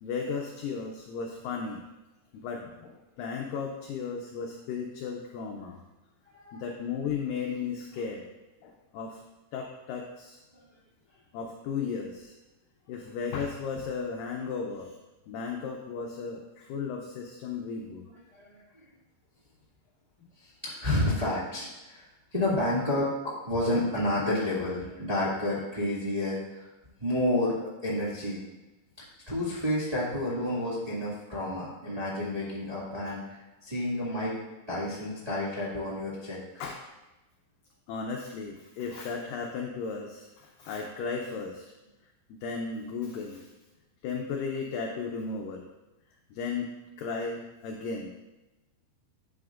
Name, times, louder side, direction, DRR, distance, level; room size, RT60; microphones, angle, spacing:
voice 1, 0.0-1.8 2.3-5.8 6.5-8.2 8.6-9.2 9.5-10.4 11.3-12.3 12.9-14.9 15.3-18.0 36.6-36.8 37.9-41.6 42.3-43.5 44.0-45.7 46.3-48.1, left 5 dB, 85° left, 2 dB, 1.9 m, -35 dB
voice 2, 6.3-6.7 10.5-10.7 18.3-18.8 20.4-22.1 22.3-26.7 27.0-28.4 29.3-34.4 34.7-36.6, left 1 dB, 30° right, -8 dB, 0.7 m, -30 dB
11.0 x 7.8 x 2.5 m, 1.0 s
omnidirectional pair, 4.8 m